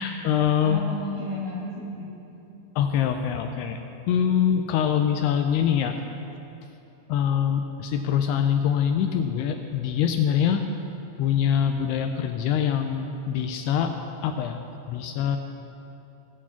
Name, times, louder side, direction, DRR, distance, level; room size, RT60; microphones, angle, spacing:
voice 1, 0.0-0.8 2.8-3.8 4.1-5.9 7.1-10.6 11.2-13.9 14.2-14.6 14.9-15.4, left 8 dB, 80° left, 5 dB, 2.5 m, -24 dB
voice 2, 0.6-2.7, equal, 70° right, -5 dB, 1.2 m, -34 dB
18.0 x 7.3 x 5.8 m, 2.9 s
omnidirectional pair, 5.0 m